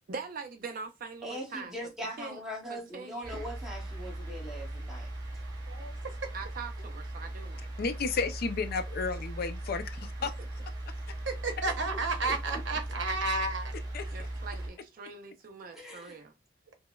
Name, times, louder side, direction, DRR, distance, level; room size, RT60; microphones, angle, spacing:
voice 1, 0.1-1.7 2.2-2.4 2.7-3.5 6.3-7.6 12.3-12.8 14.1-16.3, right 4 dB, 50° right, 0.4 m, -43 dB
voice 2, 1.2-5.1 12.2-12.3 15.7-16.2, equal, 5° right, 1.0 m, -41 dB
sound 1, 3.2-14.7, right 1 dB, 25° right, 1.7 m, -39 dB
voice 3, 7.8-10.3 13.9-14.1, left 4 dB, 50° left, 0.4 m, -32 dB
voice 4, 11.3-13.7, right 3 dB, 70° right, 0.8 m, -32 dB
5.2 x 2.0 x 2.2 m
head